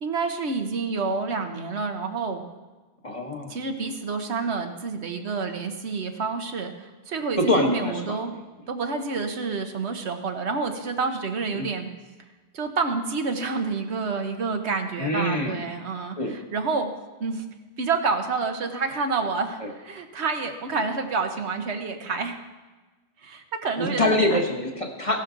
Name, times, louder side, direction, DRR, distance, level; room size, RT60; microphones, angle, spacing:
voice 1, 0.0-2.4 3.5-8.3 8.7-11.9 12.5-16.9 17.2-17.4 17.8-22.4 23.2-24.2, right 4 dB, 80° right, 6 dB, 1.3 m, -28 dB
voice 2, 3.0-3.6 7.4-8.2 11.5-11.7 15.0-15.6 16.2-16.3 23.8-25.2, left 1 dB, 30° left, 1 dB, 1.4 m, -25 dB
15.5 x 11.5 x 3.8 m, 1.2 s
omnidirectional pair, 1.1 m